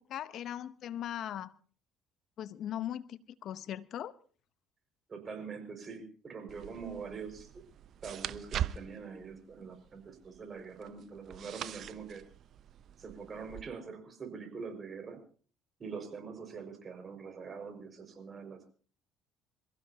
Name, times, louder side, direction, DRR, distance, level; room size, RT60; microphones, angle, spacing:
voice 1, 0.1-1.5 2.4-4.1, left 11 dB, 60° left, 15 dB, 0.8 m, -39 dB
voice 2, 5.1-7.6 8.0-12.2 13.0-15.2 15.8-18.7, right 5 dB, 40° right, 5 dB, 5.4 m, -44 dB
sound 1, 6.5-13.6, right 10 dB, 55° right, 0.7 m, -42 dB
27.5 x 15.5 x 2.8 m, 0.43 s
hypercardioid pair, 65°, 0 cm